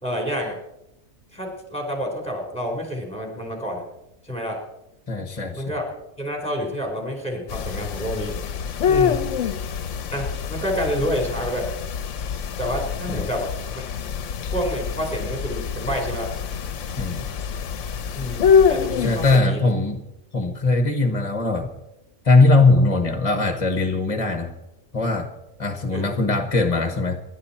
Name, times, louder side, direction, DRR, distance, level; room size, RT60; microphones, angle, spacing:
voice 1, 0.0-0.6 1.3-3.8 4.2-4.6 5.6-5.8 6.2-8.4 8.9-9.2 10.1-11.7 12.6-14.1 14.5-16.3 18.1-19.6 25.9-26.1, equal, 5° left, 1 dB, 4.2 m, -28 dB
voice 2, 5.1-5.8 13.1-13.3 17.0-17.3 19.0-20.0 20.3-21.7 22.2-24.5 24.9-25.3 25.6-27.2, left 3 dB, 25° left, 7 dB, 1.3 m, -20 dB
sound 1, 7.5-19.4, left 6 dB, 65° left, 1.1 m, -25 dB
27.5 x 11.5 x 4.4 m, 0.91 s
omnidirectional pair, 1.4 m